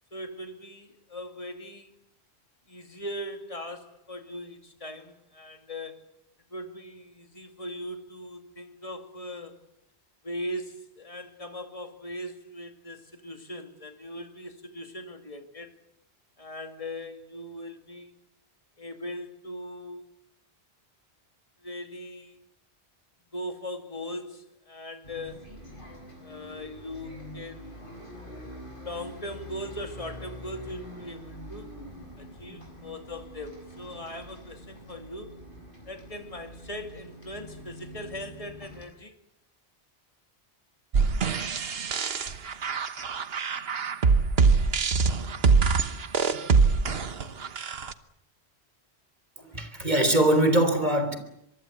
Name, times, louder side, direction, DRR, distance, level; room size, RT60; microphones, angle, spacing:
voice 1, 0.1-1.9 2.7-6.0 6.5-9.6 10.2-15.7 16.4-18.1 18.8-20.0 21.6-22.4 23.3-25.6 26.2-27.9 28.8-31.7 32.2-35.4 35.9-39.2, left 1 dB, 30° left, 2.5 m, -39 dB
Bus, 25.0-38.9, equal, 50° left, 6.6 m, -45 dB
sound 1, 40.9-47.9, right 4 dB, 65° right, 1.4 m, -24 dB
voice 2, 49.4-51.2, right 1 dB, 40° right, 3.7 m, -22 dB
25.0 x 23.5 x 8.1 m
omnidirectional pair, 1.1 m